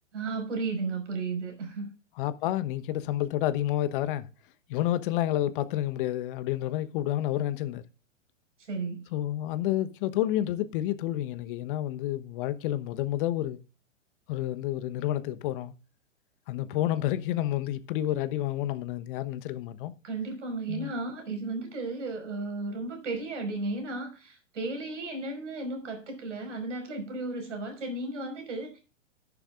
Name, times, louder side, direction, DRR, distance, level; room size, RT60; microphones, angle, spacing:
voice 1, 0.1-1.9 8.6-9.1 20.0-28.8, right 3 dB, 65° right, 5.7 m, -34 dB
voice 2, 2.2-4.3 4.7-7.8 9.1-13.6 14.3-15.7 16.5-19.9 20.7-20.9, left 13 dB, 40° left, 1.1 m, -29 dB
13.0 x 11.0 x 2.5 m
hypercardioid pair, 115°, 38 cm